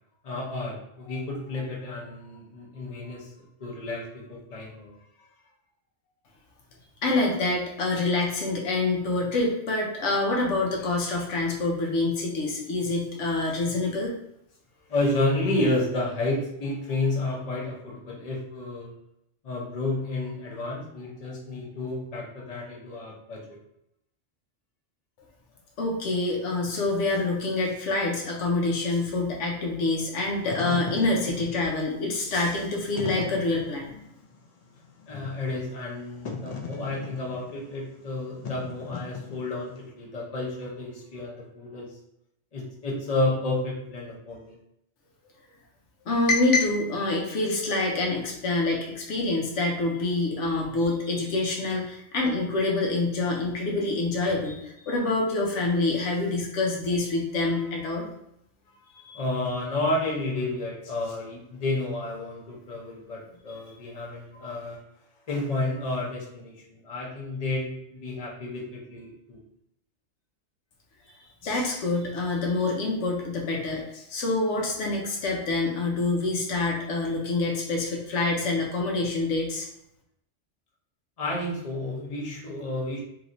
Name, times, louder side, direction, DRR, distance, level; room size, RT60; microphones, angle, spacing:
voice 1, 0.2-5.0 14.9-18.9 19.4-23.4 35.1-42.0 42.5-44.5 50.2-50.6 59.1-64.8 65.3-69.4 81.2-83.0, left 2 dB, 35° left, -4 dB, 0.8 m, -31 dB
voice 2, 7.0-14.1 25.8-33.9 46.1-58.1 59.0-59.2 64.3-64.4 71.4-79.7, left 2 dB, 85° left, -1 dB, 1.0 m, -26 dB
Wind / Fire, 30.3-39.8, left 4 dB, 55° left, 0.4 m, -38 dB
3.1 x 2.8 x 2.6 m, 0.78 s
omnidirectional pair, 1.2 m